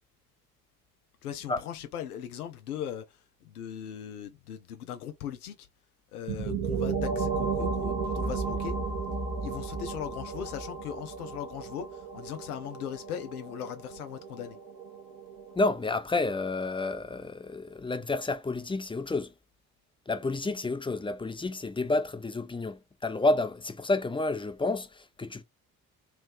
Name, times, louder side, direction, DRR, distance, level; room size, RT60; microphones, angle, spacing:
voice 1, 1.2-5.7 6.1-8.8 9.4-14.6, left 9 dB, 85° left, 0.5 m, -39 dB
sound 1, 6.3-15.8, right 4 dB, 60° right, 1.3 m, -34 dB
voice 2, 15.6-19.3 20.1-25.4, left 2 dB, 10° left, 0.6 m, -30 dB
3.3 x 3.0 x 3.4 m
figure-of-eight pair, 45°, 44 cm